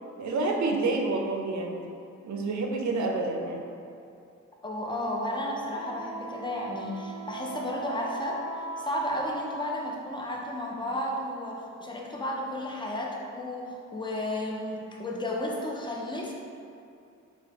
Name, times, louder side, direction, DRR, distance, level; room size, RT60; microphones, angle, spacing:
voice 1, 0.2-1.9 2.2-3.7, right 3 dB, 65° right, 1 dB, 0.4 m, -28 dB
voice 2, 4.6-16.3, left 1 dB, 15° left, -2 dB, 0.4 m, -33 dB
Wind instrument woodwind instrument, 5.7-9.8, right 2 dB, 20° right, 0.7 m, -40 dB
3.8 x 2.3 x 2.8 m, 2.5 s
wide cardioid pair, 90°, 31 cm